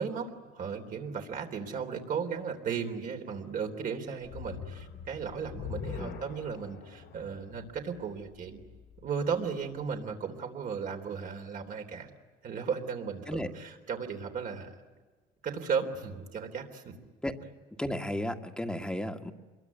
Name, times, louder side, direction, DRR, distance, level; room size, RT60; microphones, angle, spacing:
voice 1, 0.0-8.6 9.0-12.1 12.4-14.8 15.4-16.9, right 6 dB, 55° right, 4 dB, 3.6 m, -35 dB
sound 1, 4.2-9.5, left 7 dB, 85° left, 4.2 m, -44 dB
voice 2, 17.8-19.3, left 1 dB, 5° left, 5 dB, 1.7 m, -34 dB
26.0 x 22.5 x 9.7 m, 1.3 s
cardioid pair, 110°, 17 cm